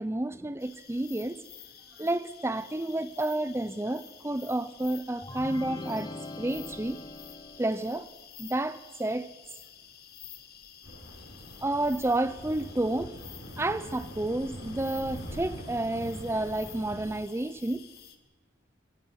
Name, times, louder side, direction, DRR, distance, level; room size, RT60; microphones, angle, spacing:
voice 1, 0.0-1.4 2.0-7.0 7.6-8.1 8.4-9.3 11.6-13.2 13.6-17.9, right 1 dB, 15° right, 0.6 m, -30 dB
sound 1, 0.6-18.2, left 9 dB, 55° left, 1.8 m, -51 dB
sound 2, 5.2-8.0, left 2 dB, 20° left, 1.1 m, -41 dB
sound 3, 10.8-17.1, equal, 80° left, 7.8 m, -43 dB
26.5 x 16.5 x 6.4 m
head